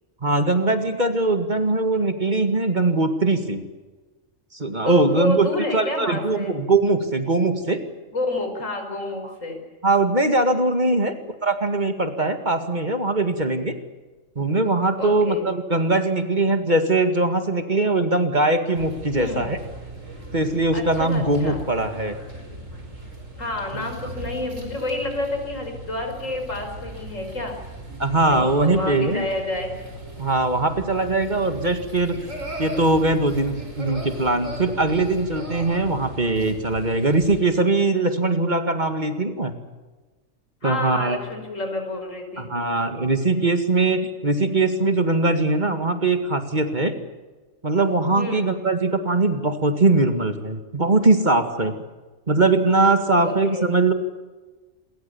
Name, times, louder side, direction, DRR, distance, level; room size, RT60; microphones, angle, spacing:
voice 1, 0.2-3.6 4.5-7.8 9.8-11.1 11.4-13.8 14.4-19.6 20.3-22.2 23.7-23.9 28.0-29.2 30.2-32.2 32.6-39.5 40.6-41.2 42.4-47.0 47.6-51.8 52.3-53.9, right 2 dB, 35° right, 7 dB, 2.2 m, -21 dB
voice 2, 4.8-6.6 8.1-9.6 10.8-11.0 15.0-15.5 19.1-19.4 20.7-21.6 23.4-27.6 28.3-29.7 40.6-42.5 48.2-48.5 53.2-53.7, left 2 dB, 85° left, 4 dB, 6.0 m, -29 dB
sound 1, 18.7-37.4, right 1 dB, 80° right, 5.7 m, -38 dB
27.0 x 23.0 x 7.1 m, 1.3 s
omnidirectional pair, 1.3 m